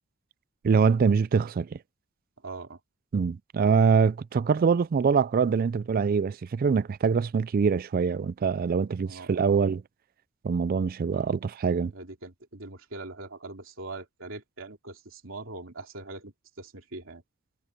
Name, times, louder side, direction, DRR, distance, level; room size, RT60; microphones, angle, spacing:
voice 1, 0.6-1.8 3.1-9.8 10.4-11.9, right 5 dB, 40° right, 0.3 m, -24 dB
voice 2, 2.4-2.8 9.0-9.6 11.9-17.2, right 2 dB, 65° right, 3.0 m, -42 dB
head